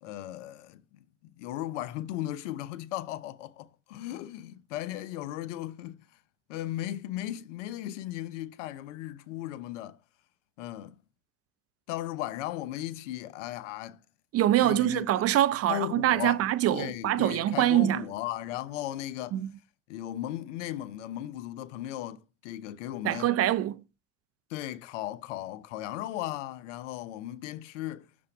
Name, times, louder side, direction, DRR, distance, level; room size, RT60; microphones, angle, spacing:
voice 1, 0.0-6.0 6.5-10.0 10.6-11.0 11.9-14.0 14.6-15.1 15.7-16.4 16.7-19.4 19.9-23.3 24.5-28.1, left 13 dB, 85° left, 0.7 m, -36 dB
voice 2, 14.3-18.0 19.3-19.4 23.0-23.8, right 13 dB, 40° right, 0.6 m, -24 dB
6.8 x 3.7 x 5.8 m
supercardioid pair, 95°, 35 cm